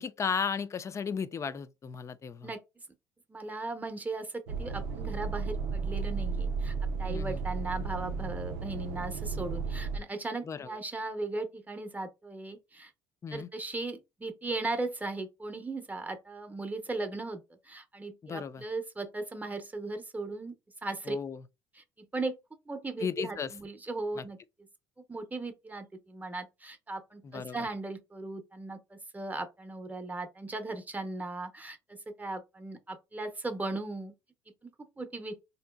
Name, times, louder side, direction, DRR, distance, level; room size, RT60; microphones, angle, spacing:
voice 1, 0.0-2.5 7.1-7.4 10.4-10.8 13.2-13.5 18.2-18.6 21.1-21.4 23.0-23.5 24.2-24.3 27.2-27.7, left 6 dB, 30° left, 0.3 m, -35 dB
voice 2, 3.3-12.9 13.3-20.5 20.8-21.2 21.8-22.4 22.7-24.4 25.1-34.1 34.6-35.4, right 2 dB, 15° right, 0.7 m, -37 dB
sound 1, 4.5-10.0, right 4 dB, 90° right, 0.5 m, -34 dB
3.6 x 2.7 x 2.2 m
supercardioid pair, 95°, 10 cm